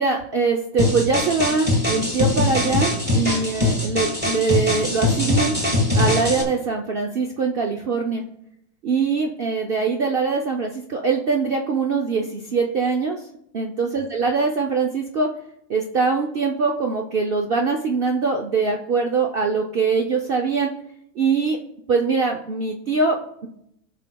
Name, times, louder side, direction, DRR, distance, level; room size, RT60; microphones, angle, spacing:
voice 1, 0.0-5.5 5.9-8.2 8.8-13.2 13.5-15.3 15.7-20.7 21.2-21.6 21.9-23.5, right 4 dB, 85° right, 2 dB, 0.5 m, -23 dB
sound 1, 0.8-6.4, left 2 dB, 5° right, 1.3 m, -22 dB
16.0 x 5.4 x 2.2 m, 0.76 s
omnidirectional pair, 1.8 m